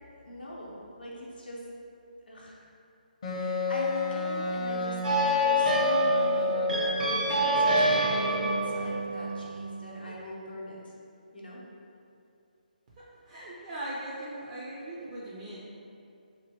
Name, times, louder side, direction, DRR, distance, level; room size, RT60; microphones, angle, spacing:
voice 1, 0.2-1.7 2.3-2.6 3.3-6.5 7.0-10.8 11.3-11.6, equal, 85° left, -6 dB, 0.6 m, -40 dB
Wind instrument woodwind instrument, 3.2-7.9, left 4 dB, 40° left, 0.5 m, -30 dB
sound 1, 5.0-10.1, right 1 dB, 60° right, 0.7 m, -27 dB
voice 2, 13.0-15.6, right 1 dB, 30° right, -7 dB, 0.4 m, -39 dB
2.9 x 2.6 x 2.7 m, 2.6 s
figure-of-eight pair, 145°, 5 cm